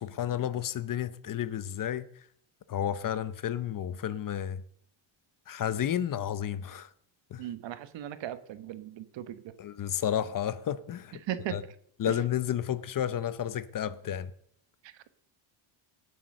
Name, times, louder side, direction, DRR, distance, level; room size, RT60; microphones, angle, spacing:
voice 1, 0.0-2.1 2.7-4.6 5.5-6.9 7.3-7.4 9.6-11.2 11.5-11.6 12.0-14.3, left 10 dB, 40° left, 0.8 m, -31 dB
voice 2, 7.4-9.4 11.2-11.6 12.1-12.2 14.8-15.1, right 11 dB, 65° right, 1.3 m, -37 dB
18.5 x 8.0 x 6.6 m
cardioid pair, 120°, 48 cm